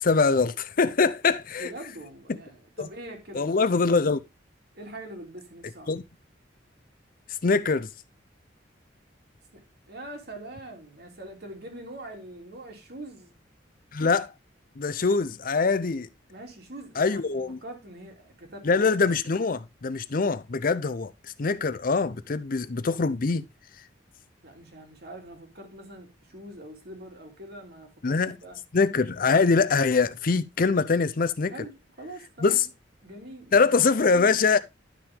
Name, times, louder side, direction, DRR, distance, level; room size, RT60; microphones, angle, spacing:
voice 1, 0.0-1.7 2.3-2.4 2.8-2.9 3.3-4.2 5.9-6.0 7.4-7.9 13.9-14.3 14.8-16.1 17.0-17.6 18.6-21.1 21.4-23.5 28.0-28.4 28.7-31.5 32.4-32.7 33.5-34.6, left 4 dB, 50° left, 0.6 m, -23 dB
voice 2, 1.5-3.9 4.7-6.0 9.5-13.3 16.3-18.7 24.4-28.6 30.9-31.0 31.4-32.7 33.0-33.7, right 1 dB, 60° right, 2.9 m, -43 dB
11.5 x 5.8 x 3.5 m
head